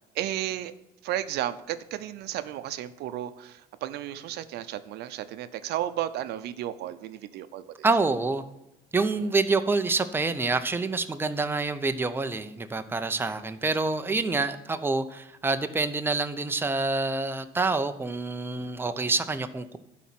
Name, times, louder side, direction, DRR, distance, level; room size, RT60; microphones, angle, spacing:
voice 1, 0.1-0.7 1.0-7.9 9.2-9.3, right 12 dB, 80° right, 12 dB, 0.6 m, -33 dB
voice 2, 7.8-8.4 8.9-19.8, right 3 dB, 15° right, 9 dB, 0.7 m, -27 dB
11.5 x 4.1 x 7.6 m, 0.90 s
cardioid pair, 110°, 17 cm